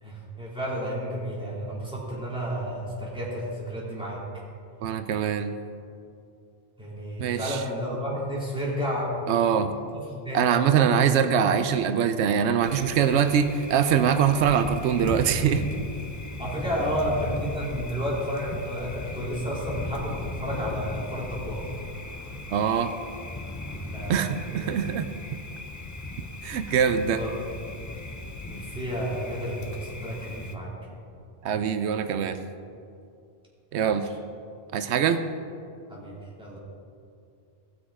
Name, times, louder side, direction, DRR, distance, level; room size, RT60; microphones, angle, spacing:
voice 1, 0.0-4.2 6.8-9.2 9.5-9.6 9.9-11.0 16.4-21.7 23.8-24.2 24.5-24.6 27.1-27.3 28.5-30.7 35.9-36.6, equal, 5° right, -6 dB, 2.9 m, -31 dB
voice 2, 4.8-5.5 7.2-7.6 9.3-9.7 10.3-15.6 22.5-23.0 24.1-25.1 26.4-27.2 31.4-32.4 33.7-34.1 34.7-35.2, right 8 dB, 85° right, 10 dB, 0.9 m, -23 dB
Thunder, 12.6-30.6, left 2 dB, 25° left, 0.4 m, -37 dB
16.5 x 6.2 x 4.8 m, 2.5 s
omnidirectional pair, 1.1 m